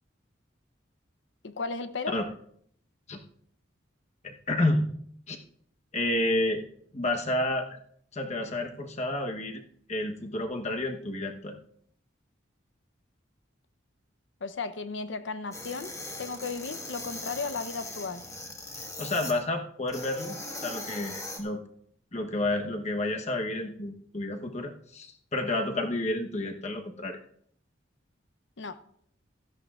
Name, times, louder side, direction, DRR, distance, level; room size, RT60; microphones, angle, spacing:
voice 1, 1.4-2.1 14.4-15.9 16.2-18.2 28.6-28.8, left 4 dB, 70° left, 11 dB, 0.8 m, -35 dB
voice 2, 4.2-4.9 5.3-5.4 5.9-6.6 6.9-7.8 8.1-9.6 9.9-11.6 19.0-20.4 20.6-21.6 22.1-27.2, left 1 dB, 35° left, 4 dB, 1.0 m, -30 dB
sound 1, 15.5-19.3 19.9-21.4, left 2 dB, 15° left, 1.6 m, -40 dB
16.5 x 13.5 x 2.5 m, 0.66 s
head